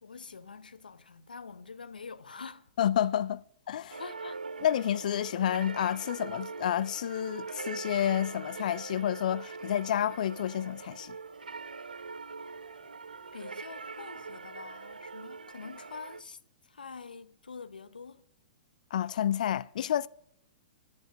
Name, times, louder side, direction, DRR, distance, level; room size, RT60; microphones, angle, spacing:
voice 1, 0.0-2.7 4.0-4.4 13.3-16.4 16.6-18.2, left 5 dB, 85° left, 0.8 m, -45 dB
voice 2, 2.8-3.4 3.7-4.0 4.6-11.1 18.9-20.1, left 10 dB, 65° left, 0.4 m, -29 dB
sound 1, 3.9-16.2, right 4 dB, 90° right, 0.5 m, -42 dB
10.5 x 7.0 x 7.6 m
hypercardioid pair, 115°, 5 cm